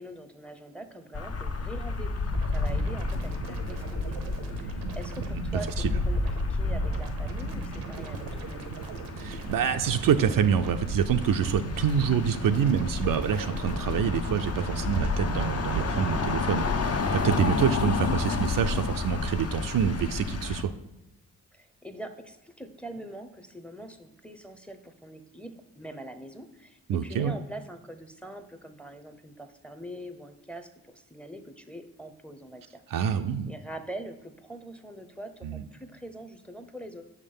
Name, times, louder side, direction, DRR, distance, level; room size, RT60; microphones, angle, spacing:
voice 1, 0.0-2.2 2.5-3.8 4.1-4.2 4.6-6.2 6.5-8.7 21.5-33.2 33.5-37.0, right 1 dB, 5° left, 8 dB, 0.7 m, -43 dB
sound 1, 1.1-20.6, left 4 dB, 40° left, 0.7 m, -31 dB
sound 2, 2.2-16.3, right 5 dB, 85° right, 0.8 m, -37 dB
voice 2, 9.2-20.7 26.9-27.4 32.9-33.5 35.4-35.6, right 8 dB, 60° right, 8 dB, 0.5 m, -26 dB
6.3 x 3.6 x 5.4 m, 0.96 s
supercardioid pair, 40°, 39 cm